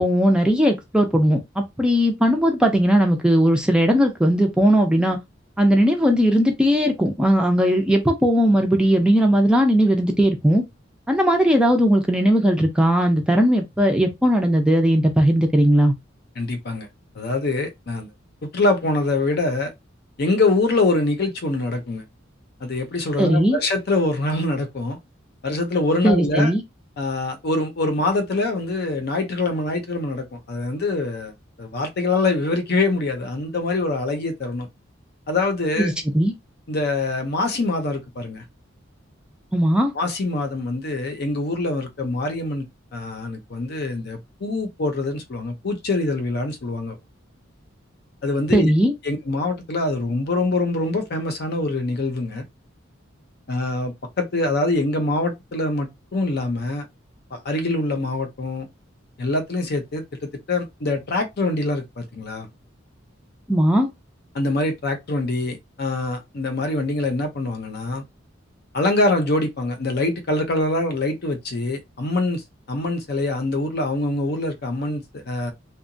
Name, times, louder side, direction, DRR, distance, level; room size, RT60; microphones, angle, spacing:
voice 1, 0.0-5.2 5.6-10.6 11.1-15.9 23.2-23.6 26.0-26.6 35.8-36.3 39.5-39.9 48.5-48.9 63.5-63.9, equal, 5° right, 0.4 m, -18 dB
voice 2, 16.4-16.9 17.2-18.1 18.4-19.7 20.2-22.0 22.6-25.0 25.4-26.5 27.0-31.3 31.6-34.7 35.3-35.9 36.7-38.4 39.9-42.6 42.9-47.0 48.2-48.7 49.0-52.4 53.5-56.9 57.3-58.7 59.2-62.5 64.3-68.0 68.7-72.4 72.7-75.5, left 2 dB, 55° left, 0.6 m, -24 dB
2.8 x 2.2 x 2.6 m
head